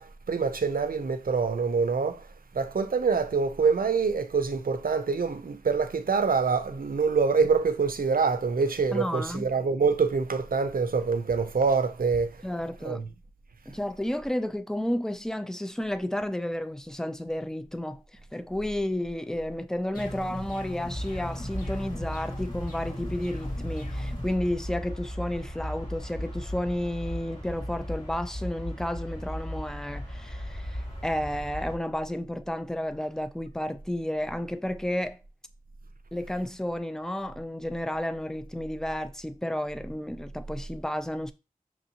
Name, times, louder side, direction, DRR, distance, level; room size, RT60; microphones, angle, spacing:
voice 1, 0.0-2.3 2.5-12.4 12.8-13.0, right 5 dB, 90° right, 0.4 m, -25 dB
voice 2, 8.9-9.5 12.4-13.0 13.7-35.2 36.1-41.3, left 1 dB, 5° left, 0.4 m, -32 dB
sound 1, 19.9-24.3, equal, 80° left, 1.7 m, -39 dB
sound 2, 20.8-31.8, equal, 55° left, 2.5 m, -37 dB
6.0 x 2.6 x 2.8 m
wide cardioid pair, 50°, 14 cm